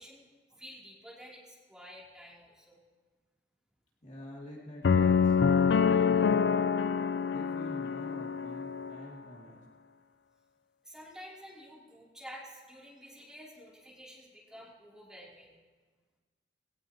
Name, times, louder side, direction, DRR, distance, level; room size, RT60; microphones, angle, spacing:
voice 1, 0.0-2.8 10.8-15.6, equal, 5° right, -6 dB, 3.0 m, -50 dB
voice 2, 4.0-6.7 7.3-9.6, equal, 40° left, -4 dB, 2.5 m, -47 dB
sound 1, 4.8-9.0, left 6 dB, 70° left, 0.4 m, -26 dB
19.5 x 17.5 x 2.9 m, 1.4 s
head